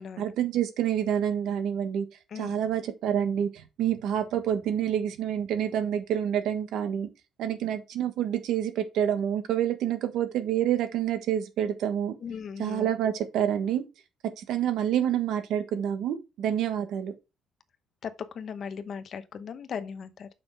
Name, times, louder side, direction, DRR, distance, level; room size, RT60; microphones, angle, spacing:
voice 1, 0.2-2.1 2.3-7.1 7.4-12.1 12.6-13.8 14.4-17.1, right 9 dB, 75° right, 1.3 m, -28 dB
voice 2, 12.2-12.9 18.0-20.3, left 7 dB, 40° left, 0.8 m, -37 dB
7.1 x 5.8 x 3.4 m
cardioid pair, 180°, 0 cm